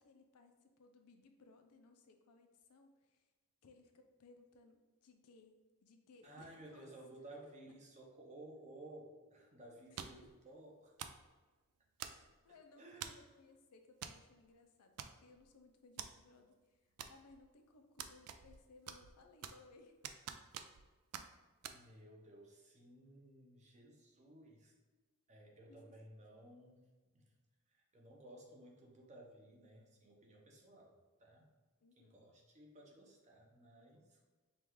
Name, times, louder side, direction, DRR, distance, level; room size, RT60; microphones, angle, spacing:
voice 1, 0.0-3.3 3.6-5.6 5.8-6.9 7.2-7.5 9.9-10.3 12.0-19.9 25.7-25.9 31.8-32.2, left 3 dB, 85° left, 5 dB, 0.5 m, -64 dB
voice 2, 6.2-10.9 12.8-13.1 21.6-24.7 25.3-26.8 27.1-27.3 27.7-31.5 32.0-34.3, right 1 dB, 30° right, -1 dB, 0.7 m, -57 dB
sound 1, 10.0-10.3 11.0-11.3 12.0-12.4 13.0-13.3 14.0-14.2 14.5-14.6 15.0-15.5 16.0-16.1 17.0-17.5 18.0-18.6 18.9-19.7 20.0-20.9 21.1-21.3 21.6-21.8, right 9 dB, 85° right, 0.3 m, -47 dB
5.2 x 2.4 x 3.1 m, 1.3 s
head